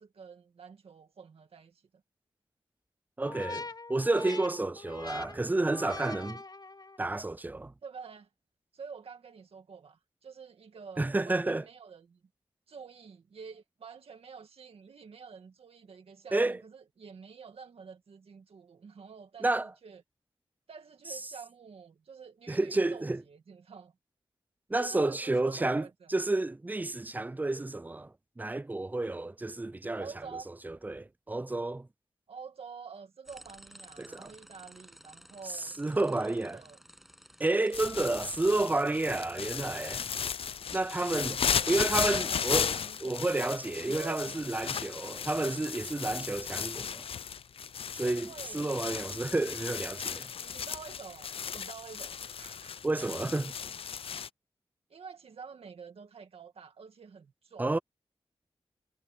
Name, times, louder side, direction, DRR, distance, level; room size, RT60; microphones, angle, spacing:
voice 1, 0.0-1.8 7.8-8.3 8.7-12.2 12.7-20.0 20.7-23.9 24.8-26.1 30.0-30.5 32.3-36.8 37.9-38.2 41.2-41.8 42.3-43.2 43.8-44.5 48.0-48.7 50.4-52.8 54.9-57.7, right 5 dB, 85° right, 2.1 m, -48 dB
sound 1, 3.2-7.1, left 3 dB, 45° left, 4.1 m, -43 dB
voice 2, 3.2-3.6 3.9-6.4 7.0-7.7 11.0-11.6 16.3-16.6 19.4-19.7 22.5-23.2 24.7-30.1 30.6-31.9 34.0-34.3 35.5-36.6 37.4-40.1 40.7-41.4 41.7-42.7 43.0-47.0 47.9-50.3 52.8-53.5 57.6-57.8, right 2 dB, 15° right, 0.5 m, -30 dB
sound 2, 33.3-38.4, equal, ahead, 7.9 m, -54 dB
sound 3, 37.7-54.3, left 7 dB, 75° left, 0.4 m, -35 dB
cardioid pair, 65°, 10 cm